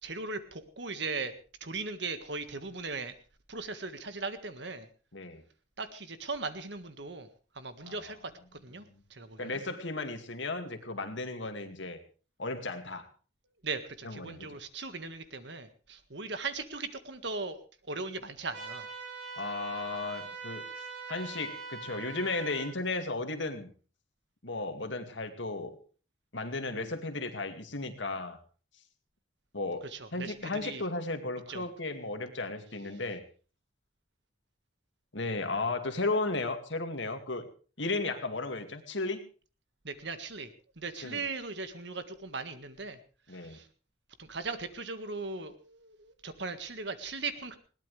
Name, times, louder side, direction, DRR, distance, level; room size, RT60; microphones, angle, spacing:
voice 1, 0.0-1.3 1.6-3.1 3.5-4.9 5.8-7.3 7.5-8.3 8.6-8.8 9.1-9.6 13.6-17.6 17.9-18.9 29.9-30.8 31.5-31.6 39.8-40.5 40.8-43.0 43.3-43.7 44.2-47.6, right 4 dB, 60° right, 10 dB, 1.7 m, -38 dB
voice 2, 5.1-5.4 7.9-8.0 9.4-12.0 12.4-13.1 14.0-14.6 19.4-20.6 21.1-23.7 24.4-25.8 26.3-28.4 29.5-33.2 35.1-37.5 37.8-39.2 41.0-41.2 43.3-43.6, left 3 dB, 70° left, 7 dB, 2.3 m, -35 dB
sound 1, 18.5-22.7, right 4 dB, 90° right, 6.6 m, -42 dB
21.0 x 18.0 x 3.4 m, 0.37 s
head